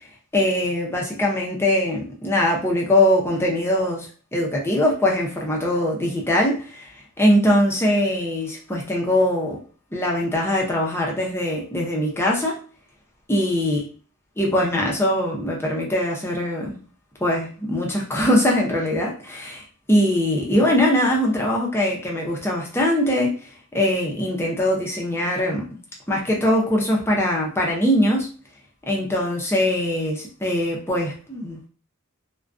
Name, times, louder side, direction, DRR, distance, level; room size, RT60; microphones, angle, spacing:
voice 1, 0.3-9.6 9.9-12.6 13.3-13.8 14.4-16.8 17.2-23.4 23.7-25.7 26.1-28.3 28.9-31.7, left 1 dB, 10° left, -2 dB, 0.6 m, -22 dB
2.3 x 2.2 x 2.5 m, 0.38 s
head